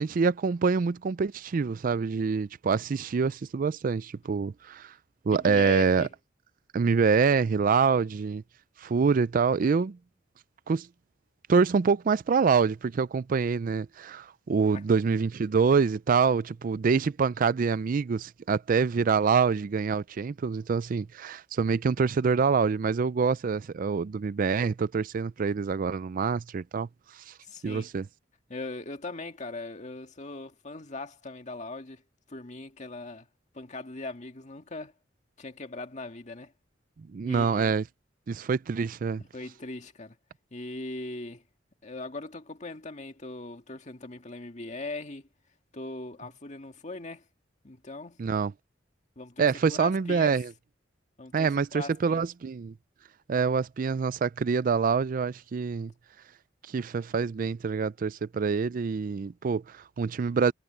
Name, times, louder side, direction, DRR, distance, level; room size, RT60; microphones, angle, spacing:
voice 1, 0.0-4.9 5.3-6.1 6.7-8.4 8.8-10.0 10.7-10.9 11.5-27.3 27.6-28.1 37.0-37.8 38.3-39.2 48.2-48.5 49.4-50.5 51.3-52.7 53.3-55.9 56.7-60.5, right 5 dB, 45° right, 0.4 m, -26 dB
voice 2, 5.3-6.1 14.7-14.8 27.4-27.9 28.5-32.0 32.3-33.3 33.5-34.9 35.4-36.5 37.3-37.7 39.3-40.2 40.5-41.4 41.8-45.3 45.7-47.3 47.6-48.2 49.2-50.4 51.2-52.2, left 2 dB, 40° left, 1.9 m, -40 dB
head